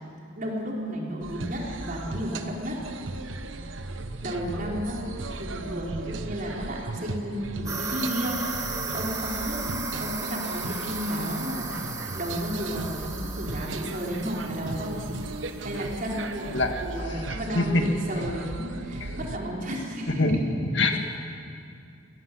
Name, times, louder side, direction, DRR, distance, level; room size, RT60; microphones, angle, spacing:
voice 1, 0.4-3.0 4.2-5.0 5.4-15.0 15.6-20.4 20.9-21.0, equal, 45° right, -2 dB, 4.5 m, -33 dB
sound 1, 1.2-19.4, right 2 dB, 85° right, 1.2 m, -37 dB
sound 2, 7.7-15.9, right 4 dB, 15° right, 1.6 m, -35 dB
voice 2, 16.5-16.7 17.6-17.7 19.0-19.1 20.2-20.4 20.7-21.0, left 3 dB, 70° left, 4 dB, 2.0 m, -23 dB
24.5 x 17.5 x 7.8 m, 2.4 s
head